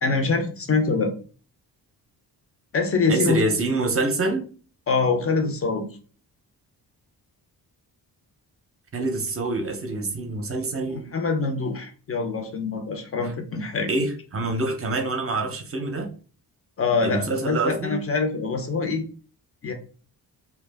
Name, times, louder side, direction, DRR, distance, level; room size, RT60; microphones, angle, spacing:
voice 1, 0.0-1.1 2.7-3.4 4.9-5.9 11.1-13.9 16.8-19.0 19.6-19.7, left 4 dB, 35° left, 5 dB, 0.6 m, -24 dB
voice 2, 3.1-4.5 8.9-11.1 13.9-16.1 17.0-18.0, right 2 dB, 35° right, 5 dB, 0.7 m, -26 dB
2.3 x 2.0 x 3.3 m, 0.38 s
cardioid pair, 95°, 41 cm